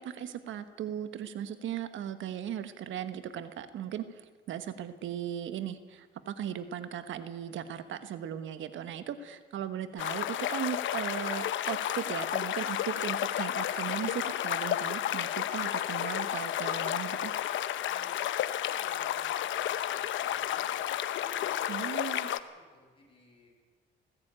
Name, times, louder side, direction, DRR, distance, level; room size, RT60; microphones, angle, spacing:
voice 1, 0.0-17.3 21.7-22.3, right 10 dB, 75° right, 11 dB, 1.3 m, -37 dB
sound 1, 10.0-22.4, left 11 dB, 75° left, 0.9 m, -32 dB
voice 2, 17.9-18.3 18.6-21.8 22.5-23.5, left 2 dB, 25° left, 0 dB, 7.7 m, -57 dB
19.5 x 15.0 x 8.8 m, 1.5 s
cardioid pair, 90°, 20 cm